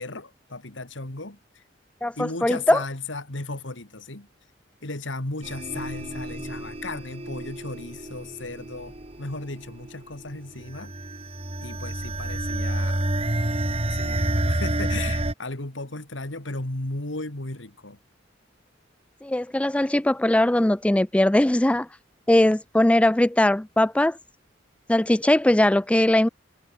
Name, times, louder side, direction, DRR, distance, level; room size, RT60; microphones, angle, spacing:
voice 1, 0.0-1.6 2.2-4.3 4.8-10.9 11.6-13.1 13.9-18.0, left 2 dB, 85° left, 2.8 m, -35 dB
voice 2, 2.0-2.8 19.2-21.9 22.3-24.2 24.9-26.3, left 1 dB, 5° left, 0.4 m, -20 dB
sound 1, 5.4-15.3, right 1 dB, 30° right, 2.4 m, -29 dB
head